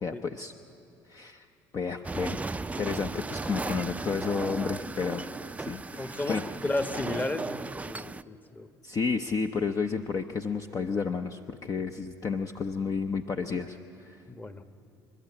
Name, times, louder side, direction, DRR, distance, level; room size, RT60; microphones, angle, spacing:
voice 1, 0.0-0.5 1.1-1.5 1.7-2.4 2.8-5.2 5.6-6.4 8.8-13.8 14.0-14.2, left 5 dB, 40° left, 5 dB, 0.8 m, -31 dB
sound 1, 2.0-8.2, right 3 dB, 15° right, 0.4 m, -36 dB
voice 2, 6.0-8.7 14.3-14.6, left 2 dB, 20° left, 8 dB, 1.3 m, -34 dB
28.5 x 12.0 x 8.6 m, 2.6 s
supercardioid pair, 75°, 9 cm